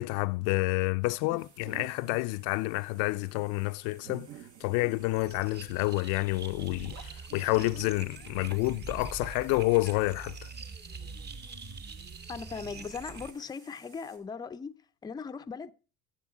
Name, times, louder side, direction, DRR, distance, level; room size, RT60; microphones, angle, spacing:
voice 1, 0.0-4.3 4.6-10.5, left 21 dB, 80° left, 0.5 m, -29 dB
sound 1, 1.0-14.2, right 5 dB, 80° right, 2.0 m, -60 dB
sound 2, 1.6-2.4 3.0-3.1 3.7-5.8 6.3-8.4, right 10 dB, 60° right, 0.7 m, -49 dB
sound 3, 4.9-13.3, right 4 dB, 35° right, 1.1 m, -44 dB
voice 2, 12.3-14.7 15.0-15.7, left 5 dB, 15° left, 0.4 m, -39 dB
11.0 x 7.2 x 4.8 m
supercardioid pair, 100°, 29 cm